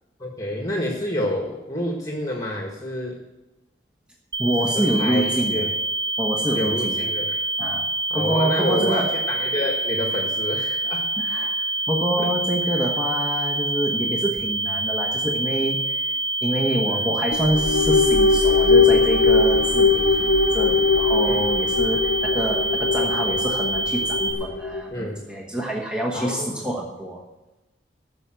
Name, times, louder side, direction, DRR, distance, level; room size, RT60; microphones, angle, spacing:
voice 1, 0.2-3.2 4.6-5.7 6.5-7.4 8.1-11.1 12.2-12.3 12.7-12.8 16.9-17.2 21.2-21.5 24.9-25.2 26.1-26.7, left 1 dB, 20° left, 0 dB, 1.6 m, -28 dB
sound 1, 4.3-24.3, right 2 dB, 25° right, 2.4 m, -26 dB
voice 2, 4.4-5.7 6.2-7.1 7.6-7.8 8.1-9.1 11.2-11.5 11.9-16.1 16.4-27.2, right 1 dB, 5° right, -2 dB, 1.2 m, -26 dB
sound 2, 17.3-24.9, left 4 dB, 80° left, 0.5 m, -20 dB
13.0 x 6.9 x 7.7 m, 1.0 s
head